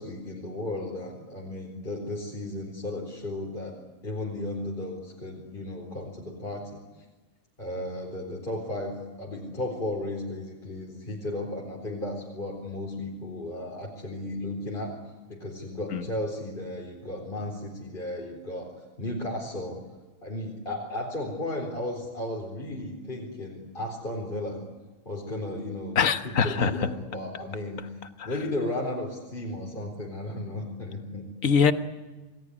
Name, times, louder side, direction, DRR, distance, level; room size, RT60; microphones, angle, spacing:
voice 1, 0.0-3.7 4.0-6.8 7.6-14.9 15.3-19.8 20.2-24.6 25.1-26.0 26.2-27.8 28.2-31.5, left 1 dB, 40° left, -1 dB, 4.3 m, -34 dB
voice 2, 26.0-26.7 31.4-31.7, left 6 dB, 80° left, 9 dB, 1.7 m, -22 dB
28.0 x 19.5 x 9.9 m, 1.2 s
omnidirectional pair, 1.4 m